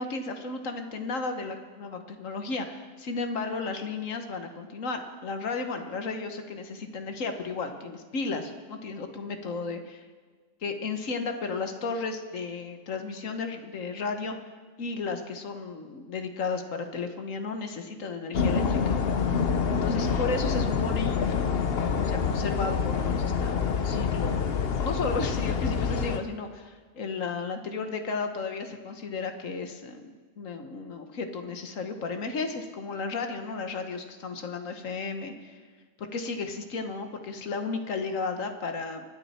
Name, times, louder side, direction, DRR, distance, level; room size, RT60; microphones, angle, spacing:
voice 1, 0.0-10.0 10.6-14.3 14.8-19.0 19.7-21.3 22.0-24.6 24.8-35.5 36.0-39.0, left 4 dB, 85° left, 6 dB, 1.6 m, -34 dB
sound 1, 18.3-26.2, left 6 dB, 55° left, 1.0 m, -26 dB
24.5 x 10.0 x 4.3 m, 1.5 s
omnidirectional pair, 1.3 m